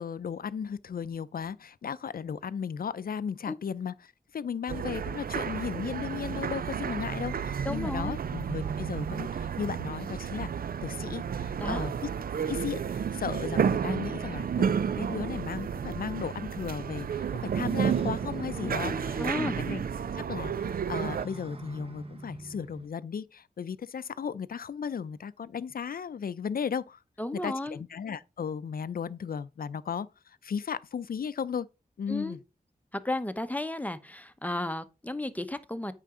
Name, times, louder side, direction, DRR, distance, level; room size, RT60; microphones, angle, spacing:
voice 1, 0.0-10.5 10.8-12.1 12.5-17.3 17.5-19.8 20.1-27.0 27.3-31.7 32.0-32.4, left 7 dB, 80° left, 0.5 m, -35 dB
sound 1, 4.7-21.2, right 7 dB, 80° right, 0.4 m, -31 dB
voice 2, 7.6-8.2 11.6-11.8 19.2-19.6 27.2-27.8 32.1-32.4 32.9-35.9, left 1 dB, 10° left, 0.9 m, -33 dB
Motorcycle, 14.0-22.9, right 2 dB, 40° right, 1.4 m, -47 dB
9.1 x 5.8 x 3.8 m
wide cardioid pair, 70°, 15 cm